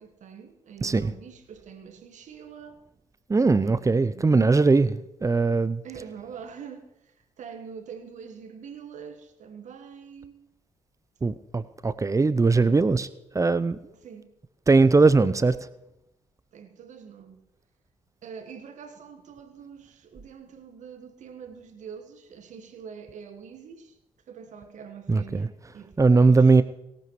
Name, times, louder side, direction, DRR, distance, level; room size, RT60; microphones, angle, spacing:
voice 1, 0.0-2.8 3.6-4.2 5.8-10.5 14.0-14.3 16.5-17.4 18.2-24.0 24.3-26.6, right 7 dB, 55° right, 1.5 m, -44 dB
voice 2, 0.8-1.1 3.3-5.8 11.2-13.1 13.3-13.8 14.7-15.6 25.1-25.5 26.0-26.6, right 3 dB, 20° right, 0.7 m, -20 dB
18.5 x 17.5 x 3.2 m
figure-of-eight pair, 45°, 15 cm